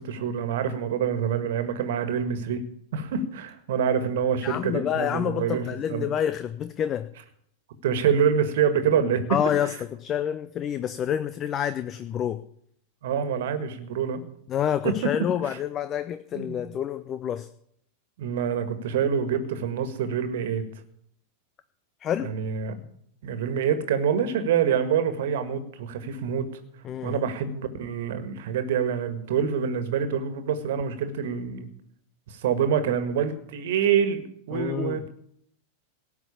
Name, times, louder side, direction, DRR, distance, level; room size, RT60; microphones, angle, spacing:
voice 1, 0.0-2.6 2.9-6.1 7.8-9.2 9.6-9.7 13.0-14.2 14.8-14.9 16.3-16.7 18.2-20.6 22.2-22.7 23.2-26.5 27.0-31.7 32.3-35.1, right 7 dB, 55° right, 9 dB, 1.8 m, -26 dB
voice 2, 4.4-7.1 9.3-12.4 14.5-17.5 22.0-22.3 26.8-27.2 34.5-35.0, left 9 dB, 30° left, 12 dB, 0.6 m, -28 dB
18.0 x 5.9 x 8.5 m, 0.69 s
figure-of-eight pair, 90°, 0 cm